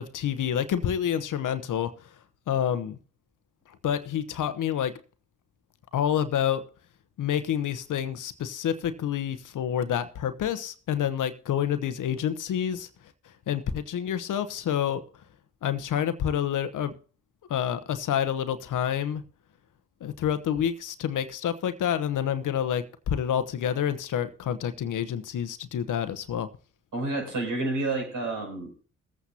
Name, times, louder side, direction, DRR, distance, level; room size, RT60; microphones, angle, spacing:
voice 1, 0.0-1.9 2.5-3.0 3.8-5.0 5.9-6.6 7.2-12.9 13.5-15.0 15.6-16.9 17.5-19.2 20.0-26.5, left 9 dB, 65° left, 11 dB, 1.0 m, -28 dB
voice 2, 26.9-28.8, right 2 dB, 65° right, 0 dB, 6.6 m, -30 dB
21.5 x 8.4 x 2.8 m, 0.39 s
supercardioid pair, 50°, 33 cm